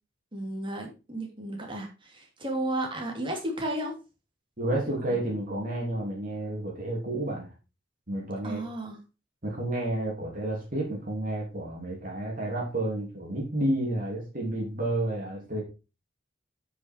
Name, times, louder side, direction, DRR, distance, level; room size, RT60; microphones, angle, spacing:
voice 1, 0.3-3.9 5.1-5.2 8.4-9.0, right 1 dB, 25° right, 1 dB, 2.6 m, -33 dB
voice 2, 4.6-7.5 8.1-8.6 9.4-15.6, right 1 dB, 45° right, -2 dB, 3.1 m, -30 dB
9.3 x 5.6 x 4.5 m, 0.30 s
head